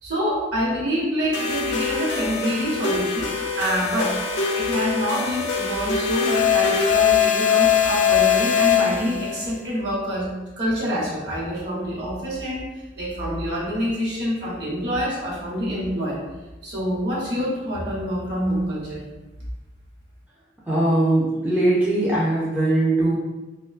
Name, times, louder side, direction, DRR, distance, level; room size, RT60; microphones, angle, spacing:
voice 1, 0.0-3.3 3.6-4.2 4.5-10.3 10.6-12.6 12.9-16.2 16.6-19.0, equal, 65° right, -6 dB, 0.9 m, -26 dB
sound 1, 1.3-9.4, left 7 dB, 75° left, 0.4 m, -22 dB
voice 2, 20.7-23.2, right 1 dB, 10° right, -8 dB, 0.3 m, -20 dB
2.5 x 2.1 x 2.3 m, 1.1 s
head